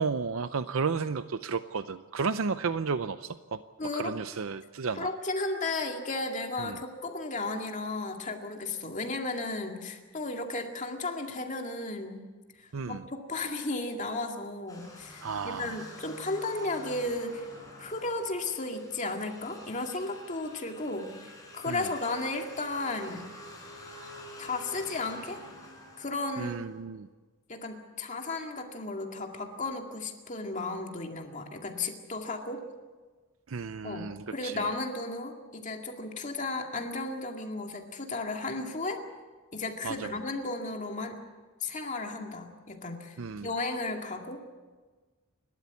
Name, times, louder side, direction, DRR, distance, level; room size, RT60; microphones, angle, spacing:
voice 1, 0.0-3.6 3.9-5.1 6.6-6.8 12.7-13.0 15.2-15.8 21.7-21.9 26.4-27.1 33.5-34.7 39.8-40.1 43.2-43.5, right 5 dB, 80° right, 12 dB, 0.6 m, -33 dB
voice 2, 3.8-4.1 4.9-12.2 12.5-17.5 17.8-23.3 24.4-25.4 26.0-26.6 27.5-32.6 33.8-39.0 39.5-41.2 41.6-44.5, left 2 dB, 35° left, 3 dB, 2.2 m, -34 dB
sound 1, 14.7-26.8, left 1 dB, 15° left, 6.1 m, -48 dB
29.0 x 13.0 x 8.3 m, 1.4 s
head